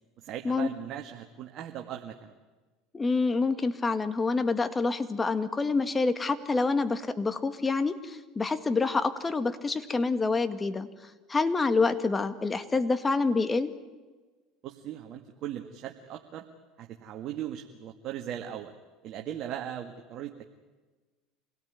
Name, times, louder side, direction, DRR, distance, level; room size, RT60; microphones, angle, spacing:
voice 1, 0.2-2.3 14.6-16.4 16.8-18.7 19.0-20.4, right 10 dB, 55° right, 3 dB, 1.9 m, -38 dB
voice 2, 2.9-10.9 11.3-13.7, left 3 dB, 20° left, 11 dB, 1.9 m, -27 dB
26.5 x 17.5 x 9.6 m, 1.3 s
hypercardioid pair, 85°, 0 cm